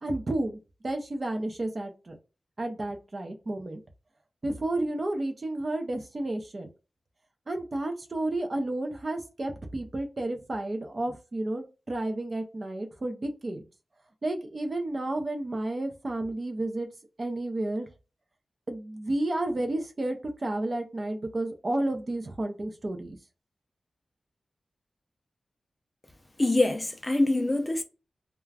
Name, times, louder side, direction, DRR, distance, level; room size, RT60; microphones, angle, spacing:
voice 1, 0.0-2.2 2.6-3.8 4.4-6.7 7.5-13.7 14.2-16.9 17.2-17.9 18.7-23.2, right 1 dB, 40° right, 0.5 m, -31 dB
voice 2, 26.4-27.8, left 2 dB, 20° left, 0.4 m, -24 dB
2.4 x 2.2 x 3.2 m
wide cardioid pair, 100°, 0 cm